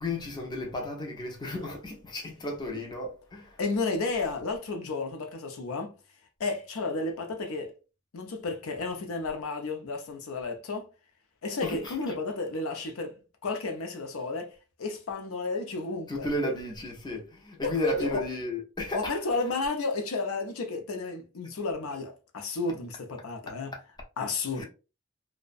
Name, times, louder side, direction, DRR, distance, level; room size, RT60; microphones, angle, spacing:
voice 1, 0.0-3.6 11.6-12.1 16.1-19.2 24.6-24.7, left 1 dB, 20° left, 0.4 m, -33 dB
voice 2, 3.6-5.9 6.4-7.7 8.1-10.9 11.4-13.2 13.4-14.5 14.8-16.3 17.6-18.2 18.9-23.7 24.2-24.6, left 3 dB, 75° left, 0.5 m, -32 dB
2.4 x 2.1 x 2.4 m
head